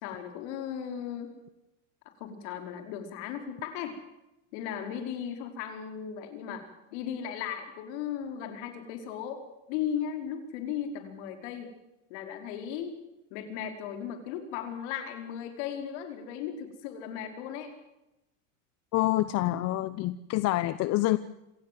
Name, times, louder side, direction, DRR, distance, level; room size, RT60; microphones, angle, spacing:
voice 1, 0.0-1.3 2.2-4.0 4.5-11.7 12.1-13.0 13.3-17.7, left 8 dB, 65° left, 5 dB, 4.9 m, -36 dB
voice 2, 18.9-21.2, left 16 dB, 45° left, 14 dB, 0.9 m, -27 dB
26.5 x 17.5 x 7.7 m, 0.93 s
supercardioid pair, 125°, 37 cm